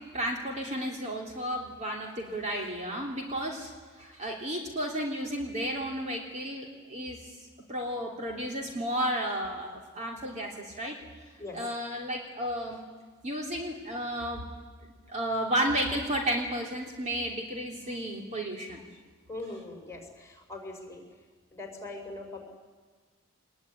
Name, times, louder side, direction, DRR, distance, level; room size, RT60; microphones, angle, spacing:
voice 1, 0.0-3.7 4.0-7.2 7.7-11.0 11.5-12.8 13.2-14.4 14.8-18.8, right 1 dB, 35° right, 0 dB, 3.3 m, -33 dB
voice 2, 19.3-21.0 21.5-22.4, left 2 dB, 15° left, 2 dB, 5.4 m, -41 dB
24.5 x 21.0 x 9.8 m, 1.4 s
head